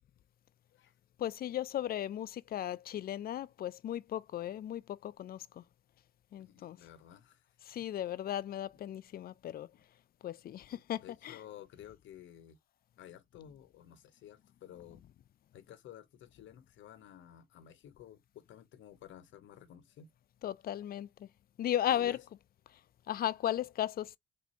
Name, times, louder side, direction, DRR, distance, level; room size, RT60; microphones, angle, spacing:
voice 1, 1.2-5.6 6.3-6.8 7.6-9.7 10.2-11.4 20.4-21.3 21.6-22.2 23.1-24.1, left 11 dB, 50° left, 0.4 m, -36 dB
voice 2, 6.4-7.8 9.7-9.8 10.7-12.6 13.0-15.0 15.5-20.1 21.9-22.2, left 11 dB, 75° left, 0.8 m, -53 dB
3.4 x 2.7 x 4.1 m
cardioid pair, 90°, 20 cm